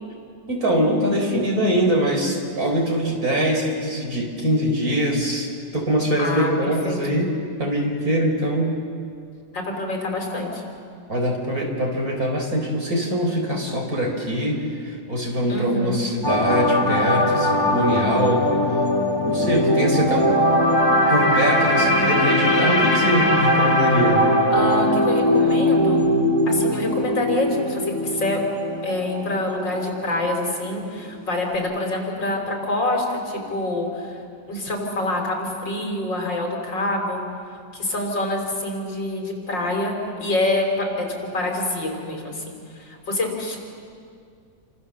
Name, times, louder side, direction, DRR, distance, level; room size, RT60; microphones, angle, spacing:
voice 1, 0.5-7.3 7.6-8.8 11.1-18.5 19.2-20.4 21.1-24.2, equal, 45° right, 1 dB, 4.7 m, -23 dB
voice 2, 6.2-6.5 6.8-7.0 9.5-10.6 15.5-16.0 24.1-26.0 26.5-28.4 28.8-34.2 34.5-37.2 37.7-43.6, left 2 dB, 65° left, 1 dB, 5.0 m, -26 dB
sound 1, 16.2-30.4 30.7-30.9, left 1 dB, 10° left, 2.5 m, -20 dB
28.5 x 26.0 x 7.4 m, 2.3 s
omnidirectional pair, 2.1 m